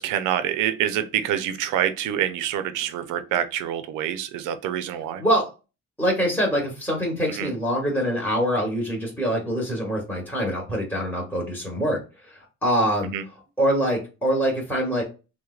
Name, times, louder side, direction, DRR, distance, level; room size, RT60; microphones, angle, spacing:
voice 1, 0.0-5.2 7.4-7.5 13.1-13.2, right 10 dB, 90° right, 10 dB, 0.5 m, -26 dB
voice 2, 5.2-5.5 6.0-15.0, equal, 5° left, -2 dB, 1.0 m, -25 dB
3.1 x 2.1 x 2.3 m, 0.31 s
cardioid pair, 90°, 30 cm